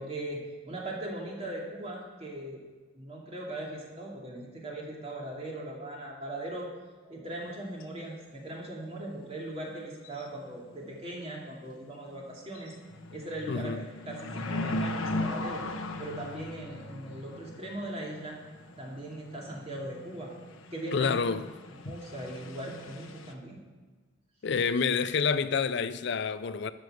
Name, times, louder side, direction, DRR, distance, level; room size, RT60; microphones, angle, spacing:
voice 1, 0.0-2.6 2.9-6.7 7.0-12.7 13.1-15.6 16.0-18.4 18.8-20.3 20.7-21.2 21.7-23.6, right 1 dB, 30° right, 2.5 m, -39 dB
sound 1, 7.4-7.5 7.8-7.9 10.0-10.5 10.7-10.8 11.4-11.7 12.1-12.2 12.5-23.3, left 2 dB, 90° left, 1.1 m, -38 dB
voice 2, 13.5-13.8 20.9-21.5 24.4-26.7, left 5 dB, 55° left, 0.4 m, -28 dB
12.5 x 6.9 x 7.9 m
head